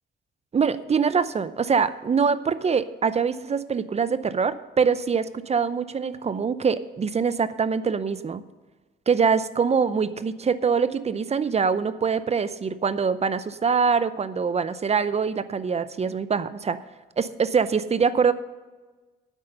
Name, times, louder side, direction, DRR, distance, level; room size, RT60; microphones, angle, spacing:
voice 1, 0.5-8.4 9.1-16.8 17.2-18.3, right 6 dB, 35° right, 14 dB, 0.6 m, -24 dB
9.6 x 8.2 x 6.6 m, 1.2 s
cardioid pair, 90°, 20 cm